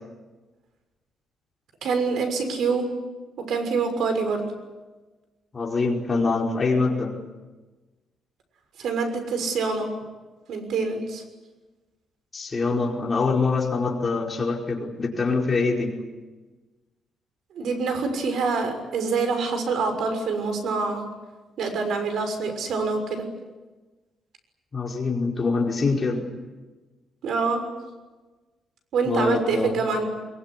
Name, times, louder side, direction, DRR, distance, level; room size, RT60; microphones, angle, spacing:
voice 1, 1.8-2.9 3.4-4.5 8.8-9.9 10.5-11.2 17.5-21.0 21.6-23.3 27.2-27.6 28.9-30.1, right 4 dB, 70° right, 6 dB, 6.3 m, -25 dB
voice 2, 5.5-7.1 12.3-15.9 24.7-26.2 29.1-29.8, left 4 dB, 30° left, 0 dB, 4.9 m, -24 dB
24.0 x 23.0 x 9.9 m, 1.2 s
cardioid pair, 135°, 0 cm